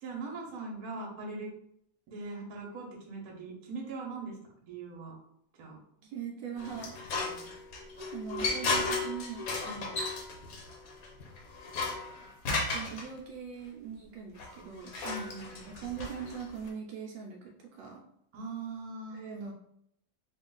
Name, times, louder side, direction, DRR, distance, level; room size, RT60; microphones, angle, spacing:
voice 1, 0.0-1.5 2.1-5.1 5.5-5.8 7.2-7.5 9.6-10.0 15.0-15.9 18.3-19.5, right 3 dB, 55° right, -1 dB, 1.3 m, -41 dB
voice 2, 6.0-7.0 8.0-9.4 12.7-14.9 15.6-18.0 19.1-19.5, right 7 dB, 80° right, 0 dB, 1.3 m, -41 dB
sound 1, 6.6-13.0 14.4-16.7, left 3 dB, 60° left, 1.0 m, -35 dB
3.7 x 2.5 x 3.8 m, 0.73 s
omnidirectional pair, 2.1 m